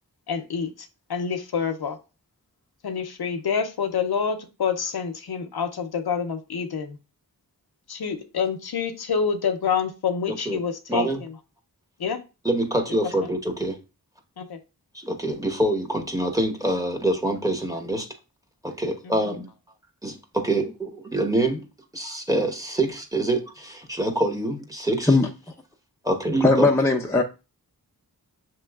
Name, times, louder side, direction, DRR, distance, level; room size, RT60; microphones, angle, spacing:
voice 1, 0.3-2.0 2.8-7.0 7.9-11.3 12.0-12.2 14.4-14.6, left 6 dB, 75° left, 0.6 m, -27 dB
voice 2, 10.3-10.6 10.9-11.2 12.4-13.8 14.9-18.1 18.6-19.5 20.0-21.7 21.9-25.2 26.0-26.7, right 1 dB, 10° right, 1.0 m, -25 dB
voice 3, 26.4-27.2, left 3 dB, 5° left, 0.5 m, -18 dB
6.9 x 3.0 x 2.3 m
wide cardioid pair, 50°, 38 cm